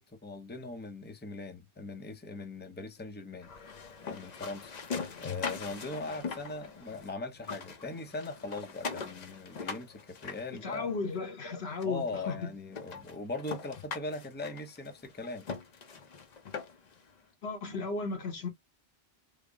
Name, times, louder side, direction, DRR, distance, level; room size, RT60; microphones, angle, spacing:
voice 1, 0.0-4.7 5.2-11.0 11.8-15.5, left 3 dB, 15° left, 0.6 m, -40 dB
sound 1, 3.4-7.1 7.4-11.1 11.8-11.9 12.3-12.4 12.7-17.0, left 5 dB, 50° left, 0.7 m, -41 dB
voice 2, 10.5-12.5 17.4-18.5, left 4 dB, 80° left, 1.3 m, -35 dB
3.6 x 2.0 x 3.5 m
omnidirectional pair, 1.0 m